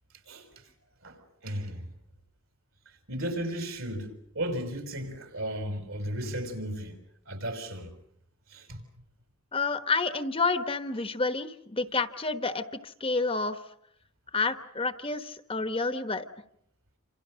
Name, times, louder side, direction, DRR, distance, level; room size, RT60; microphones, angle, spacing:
voice 1, 1.0-1.9 3.1-7.0 7.3-7.9 8.5-8.8, right 1 dB, 70° right, 5.9 m, -35 dB
voice 2, 9.5-13.6 14.3-16.2, left 3 dB, 25° left, 1.2 m, -29 dB
28.5 x 27.5 x 6.4 m
head